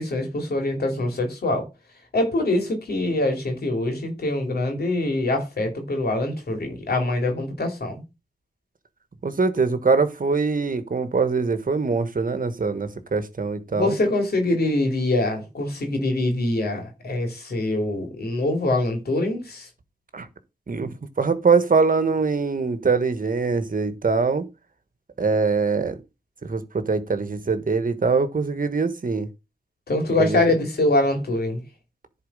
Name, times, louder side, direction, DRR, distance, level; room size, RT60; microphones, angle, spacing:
voice 1, 0.0-1.7 2.1-8.0 13.7-19.7 29.9-31.6, left 2 dB, 90° left, 3.0 m, -24 dB
voice 2, 9.2-14.0 20.1-20.3 20.7-20.9 21.2-24.4 25.2-25.9 26.4-29.3 30.2-30.4, right 4 dB, 60° right, 1.3 m, -23 dB
10.5 x 4.5 x 5.4 m
wide cardioid pair, 60°, 16 cm